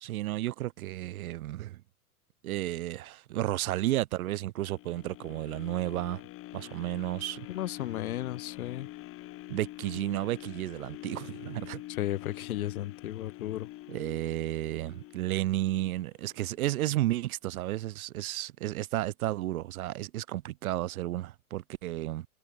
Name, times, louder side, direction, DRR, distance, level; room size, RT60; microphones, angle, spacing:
voice 1, 0.0-1.8 2.4-6.2 6.5-7.5 9.5-11.8 13.9-22.3, right 15 dB, 70° right, 0.5 m, -32 dB
sound 1, 4.6-16.7 17.1-17.2, left 17 dB, 30° left, 1.9 m, -46 dB
voice 2, 7.5-8.9 11.9-13.7, left 13 dB, 70° left, 0.8 m, -34 dB
hypercardioid pair, 120°, 45 cm